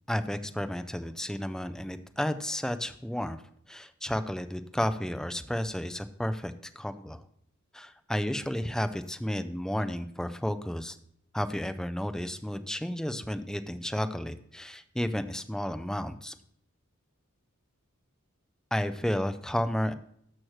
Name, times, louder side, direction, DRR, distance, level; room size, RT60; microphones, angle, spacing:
voice 1, 0.1-3.4 3.7-7.2 7.7-11.0 11.3-16.3 18.7-19.9, equal, 5° left, 10 dB, 0.4 m, -32 dB
13.0 x 6.1 x 3.1 m, 0.69 s
head